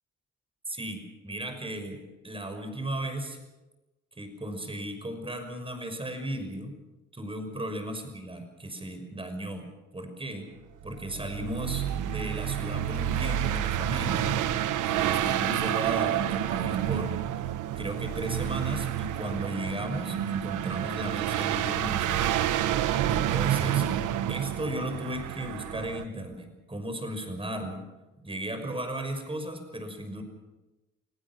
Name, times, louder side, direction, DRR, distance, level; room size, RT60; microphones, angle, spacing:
voice 1, 0.7-2.0 2.2-3.4 4.2-6.7 7.1-10.5 10.8-14.4 14.8-22.4 23.1-23.9 24.3-27.8 28.2-30.2, right 1 dB, 20° right, 6 dB, 6.0 m, -36 dB
sound 1, 10.9-26.0, right 11 dB, 85° right, 1.2 m, -29 dB
29.0 x 18.5 x 6.2 m, 1.1 s
cardioid pair, 90°, 30 cm